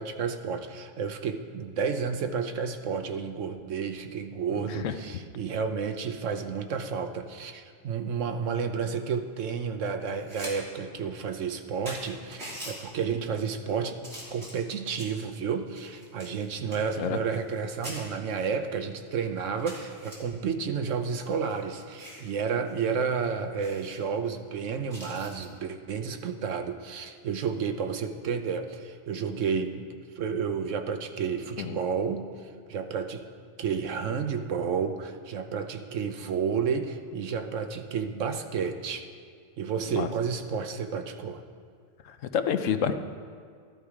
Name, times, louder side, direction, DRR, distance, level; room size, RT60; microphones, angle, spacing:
voice 1, 0.0-14.0 14.3-29.9 30.2-33.2 33.6-39.0 39.6-41.4, right 6 dB, 80° right, 7 dB, 1.2 m, -31 dB
sound 1, 10.0-10.5 10.9-11.0 11.5-11.6 11.9-12.8 13.4-13.7 14.0-15.2 15.8-17.6 17.8-18.0 18.6-18.7 19.1-19.2 19.7-20.2 21.0-22.3 22.7-22.8 23.1-23.2 23.6-24.0 24.9-25.5 27.2-27.4, equal, 55° right, 3.4 m, -43 dB
voice 2, 42.0-42.9, left 8 dB, 85° left, 9 dB, 1.1 m, -28 dB
14.0 x 11.5 x 4.9 m, 2.1 s
omnidirectional pair, 1.3 m